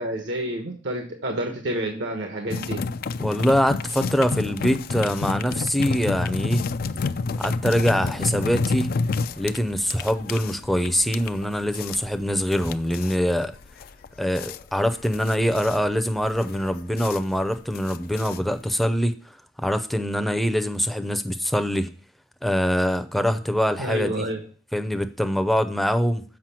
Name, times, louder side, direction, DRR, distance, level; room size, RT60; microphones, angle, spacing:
voice 1, 0.0-2.8 23.8-24.4, right 1 dB, 75° right, 3 dB, 1.3 m, -29 dB
sound 1, 2.5-18.8, left 4 dB, 50° left, 0.4 m, -30 dB
voice 2, 3.2-6.6 7.4-8.9 9.4-13.5 14.2-19.1 19.6-21.9 22.4-24.3 24.7-26.2, equal, ahead, 8 dB, 0.6 m, -24 dB
7.6 x 5.4 x 5.8 m, 0.41 s
head